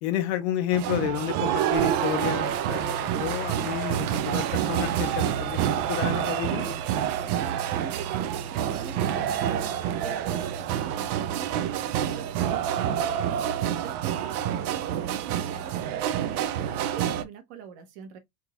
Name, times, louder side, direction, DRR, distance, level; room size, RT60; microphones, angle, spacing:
voice 1, 0.0-6.8, left 11 dB, 50° left, 0.5 m, -31 dB
sound 1, 0.7-17.2, right 10 dB, 80° right, 0.7 m, -27 dB
voice 2, 7.2-13.3 13.8-18.2, right 7 dB, 50° right, 1.1 m, -43 dB
3.6 x 2.9 x 2.3 m
supercardioid pair, 175°, 43 cm